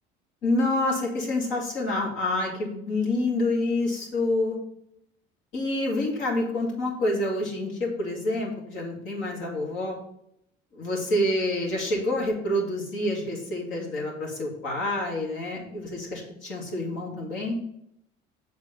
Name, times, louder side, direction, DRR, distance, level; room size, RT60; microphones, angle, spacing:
voice 1, 0.4-4.6 5.5-10.0 10.7-17.6, left 1 dB, 75° left, -2 dB, 2.5 m, -27 dB
7.0 x 4.1 x 5.3 m, 0.75 s
supercardioid pair, 85°, 20 cm